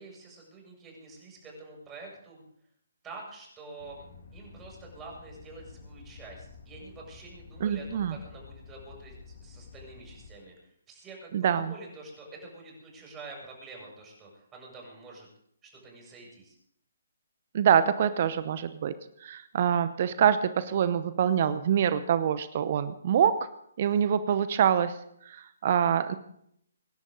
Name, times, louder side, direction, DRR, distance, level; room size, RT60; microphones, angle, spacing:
voice 1, 0.0-2.4 3.0-4.0 4.3-15.3 15.6-16.6, right 3 dB, 15° right, -1 dB, 7.2 m, -47 dB
sound 1, 3.8-10.3, left 5 dB, 55° left, 2.5 m, -50 dB
voice 2, 7.6-8.2 11.3-11.7 17.5-18.9 19.2-23.5 23.8-25.0 25.2-26.1, right 8 dB, 45° right, 13 dB, 0.9 m, -25 dB
25.5 x 11.0 x 4.0 m, 0.71 s
figure-of-eight pair, 140°, 0 cm